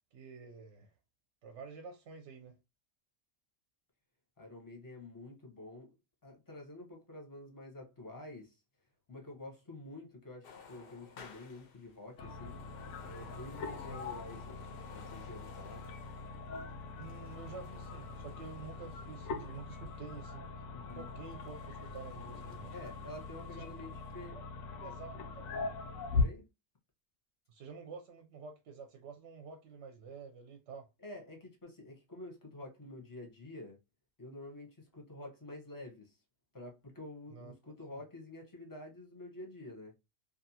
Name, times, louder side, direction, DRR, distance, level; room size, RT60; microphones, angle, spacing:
voice 1, 0.1-0.9 1.4-2.6 13.9-14.0 17.0-20.5 20.9-22.7 24.3-24.4 24.8-25.5 27.5-30.9 37.3-37.5 37.9-38.0, right 5 dB, 65° right, 0.8 m, -49 dB
voice 2, 4.4-5.9 6.2-8.6 9.1-12.6 13.0-14.7 14.9-15.9 20.7-21.1 22.7-24.4 26.1-26.5 31.0-33.8 34.2-36.2 36.5-39.9, left 2 dB, 20° left, 0.6 m, -49 dB
sound 1, 10.4-20.3 20.8-24.2, left 5 dB, 60° left, 0.6 m, -57 dB
sound 2, 12.2-26.3, left 4 dB, 90° left, 1.0 m, -40 dB
2.6 x 2.4 x 2.7 m
omnidirectional pair, 1.4 m